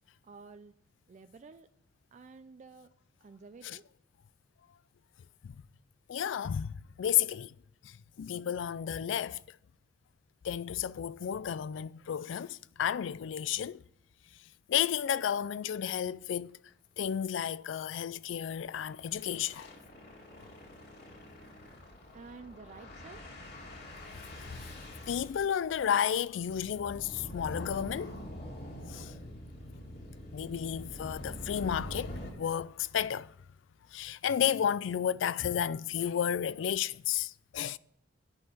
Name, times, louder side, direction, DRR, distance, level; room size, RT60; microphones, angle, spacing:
voice 1, 0.2-0.7 1.1-1.7 2.1-2.9 3.2-3.8 22.1-23.2, right 4 dB, 40° right, 0.4 m, -51 dB
voice 2, 6.1-7.5 7.8-7.9 8.2-9.4 10.4-13.8 14.7-16.6 17.0-19.7 24.5-24.6 25.1-28.2 28.9-29.1 30.3-33.3 33.9-37.8, left 9 dB, 80° left, 0.3 m, -32 dB
sound 1, 15.6-15.8 16.1-16.2 16.5-16.7 17.0-17.1 18.4-32.3, left 1 dB, 60° left, 2.2 m, -45 dB
9.0 x 5.6 x 8.1 m
head